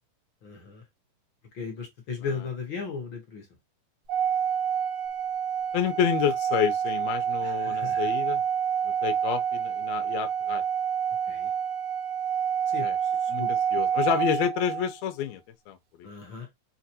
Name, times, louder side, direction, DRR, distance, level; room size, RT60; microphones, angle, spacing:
voice 1, 0.4-0.8 1.5-3.4 7.4-8.1 11.3-11.5 12.7-13.5 16.0-16.5, left 5 dB, 55° left, 1.5 m, -36 dB
Organ, 4.1-14.9, right 8 dB, 80° right, 1.2 m, -28 dB
voice 2, 5.7-8.4 8.8-10.6 12.8-13.0 13.3-16.1, left 10 dB, 75° left, 1.8 m, -29 dB
5.9 x 2.5 x 2.7 m
omnidirectional pair, 3.5 m